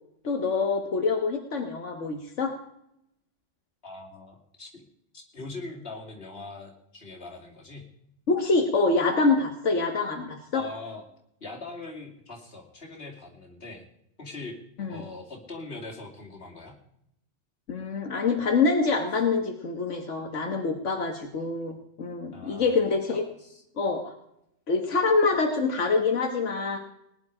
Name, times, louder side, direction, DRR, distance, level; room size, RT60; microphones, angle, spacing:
voice 1, 0.2-2.5 8.3-10.7 14.8-15.0 17.7-23.2 23.8-24.2 24.7-26.8, left 4 dB, 90° left, 3 dB, 1.7 m, -25 dB
voice 2, 3.8-4.9 5.1-7.9 10.5-11.1 11.4-13.8 14.2-16.7 22.3-22.7 23.4-23.6, left 3 dB, 55° left, -1 dB, 3.1 m, -41 dB
19.5 x 10.5 x 4.9 m, 0.78 s
omnidirectional pair, 1.2 m